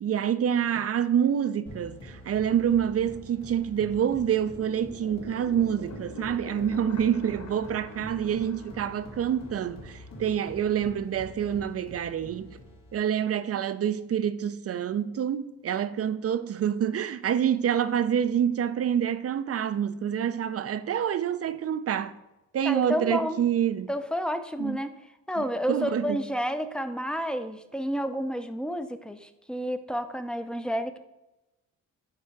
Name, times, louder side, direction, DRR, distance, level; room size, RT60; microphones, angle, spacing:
voice 1, 0.0-12.6 12.9-22.2 22.5-23.9 24.6-24.8 25.4-26.2, right 9 dB, 45° right, 0.5 m, -27 dB
sound 1, 1.7-13.2, left 1 dB, 75° left, 2.3 m, -46 dB
sound 2, 4.3-10.8, left 5 dB, 50° left, 1.0 m, -46 dB
voice 2, 22.6-23.4 23.9-25.0 25.3-31.0, equal, 5° left, 0.6 m, -30 dB
9.7 x 3.7 x 4.7 m
cardioid pair, 70°, 34 cm